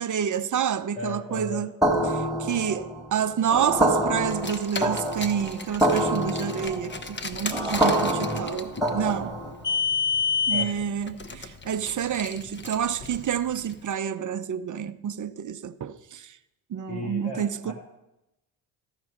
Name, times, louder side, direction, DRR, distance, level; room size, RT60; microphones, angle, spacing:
voice 1, 0.0-1.7 2.1-9.4 10.5-16.3 16.7-17.7, right 8 dB, 40° right, 0.8 m, -29 dB
voice 2, 0.9-1.7 8.1-8.4 10.5-10.8 16.9-17.7, left 1 dB, 75° left, 2.8 m, -36 dB
sound 1, 1.8-9.6, right 1 dB, ahead, 2.2 m, -26 dB
Car, 4.2-13.7, left 5 dB, 20° left, 0.9 m, -31 dB
13.0 x 4.8 x 6.5 m
hypercardioid pair, 50°, 49 cm